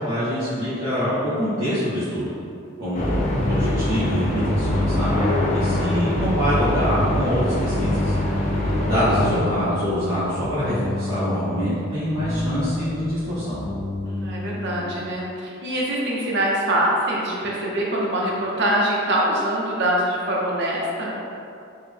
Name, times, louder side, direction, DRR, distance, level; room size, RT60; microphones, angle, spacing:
voice 1, 0.0-2.3 2.8-3.2 3.5-5.2 5.5-8.1 8.9-13.6, equal, 85° right, -16 dB, 1.3 m, -25 dB
sound 1, 2.9-9.4, left 1 dB, 35° left, 0.4 m, -24 dB
sound 2, 3.2-15.0, left 1 dB, 80° left, 0.6 m, -30 dB
voice 2, 8.3-8.9 14.0-21.2, right 1 dB, 60° right, -4 dB, 0.7 m, -24 dB
4.5 x 2.1 x 3.4 m, 2.6 s
head